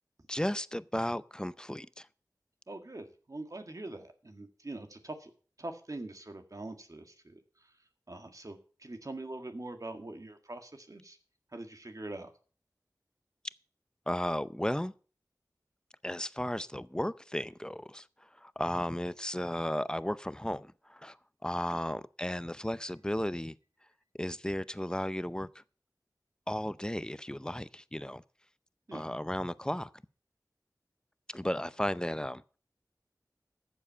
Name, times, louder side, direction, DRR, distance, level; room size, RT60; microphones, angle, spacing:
voice 1, 0.3-2.1 14.1-14.9 16.0-18.0 18.4-21.2 21.4-23.5 24.2-25.5 26.5-28.2 28.9-29.9 31.3-32.4, left 1 dB, 10° left, 0.6 m, -34 dB
voice 2, 2.7-5.3 5.6-7.4 8.1-11.2 11.5-12.3 28.9-29.1 31.6-31.7, right 2 dB, 55° right, 1.9 m, -43 dB
13.5 x 7.5 x 5.5 m
wide cardioid pair, 50°, 7 cm